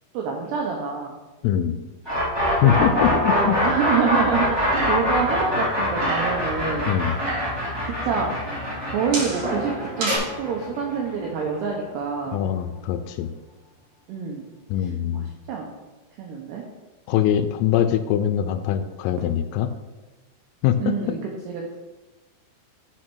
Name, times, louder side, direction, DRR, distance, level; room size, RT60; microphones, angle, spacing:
voice 1, 0.1-1.2 2.6-6.9 7.9-8.3 8.9-12.4 14.1-14.4 14.8-15.7 16.2-16.6 20.8-21.8, right 6 dB, 85° right, 0 dB, 2.4 m, -27 dB
voice 2, 1.4-1.8 2.6-3.6 6.9-7.2 12.3-13.3 14.7-15.3 17.1-19.7 20.6-20.8, left 10 dB, 85° left, 9 dB, 3.1 m, -22 dB
sound 1, 2.0-11.9, left 1 dB, 30° right, 0.4 m, -25 dB
sound 2, 4.4-5.3 5.5-6.5 7.0-7.6 8.5-10.2, right 2 dB, 50° right, 3.3 m, -29 dB
8.6 x 6.3 x 4.6 m, 1.2 s
omnidirectional pair, 5.9 m